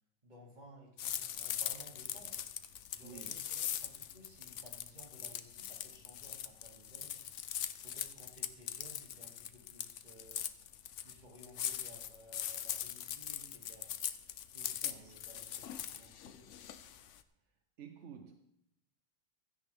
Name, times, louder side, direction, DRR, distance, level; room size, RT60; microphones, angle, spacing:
voice 1, 0.2-2.4 2.9-7.2 7.8-10.4 11.0-13.9 14.5-16.4, right 1 dB, 40° right, 2.8 m, -57 dB
sound 1, 1.0-17.2, left 10 dB, 85° left, 1.0 m, -41 dB
voice 2, 3.0-3.4 14.8-15.1 17.8-18.4, right 7 dB, 80° right, 1.2 m, -51 dB
16.0 x 13.5 x 3.5 m
omnidirectional pair, 1.2 m